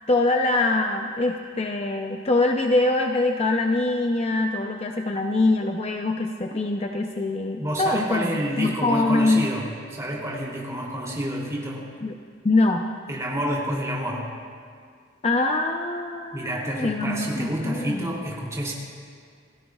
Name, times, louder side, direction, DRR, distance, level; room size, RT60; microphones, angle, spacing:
voice 1, 0.1-9.5 12.0-12.1 12.4-12.9 15.2-18.2, left 2 dB, 30° left, 3 dB, 0.6 m, -24 dB
voice 2, 7.6-11.9 13.1-14.3 16.3-18.7, equal, 15° right, -3 dB, 3.0 m, -29 dB
28.5 x 16.0 x 2.4 m, 2.1 s
head